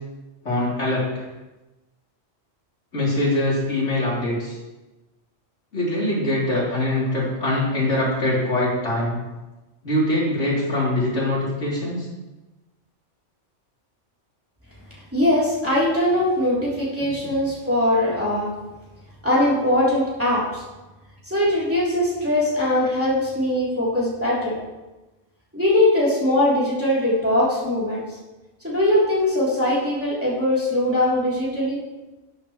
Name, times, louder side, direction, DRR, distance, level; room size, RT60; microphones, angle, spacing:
voice 1, 0.4-1.3 2.9-4.6 5.7-9.2 9.8-12.1, left 1 dB, 70° left, -7 dB, 3.9 m, -23 dB
voice 2, 15.1-18.5 19.2-20.6 21.3-24.6 25.5-28.0 28.6-31.8, left 1 dB, 10° right, -8 dB, 3.3 m, -21 dB
13.0 x 8.5 x 3.2 m, 1.1 s
omnidirectional pair, 1.3 m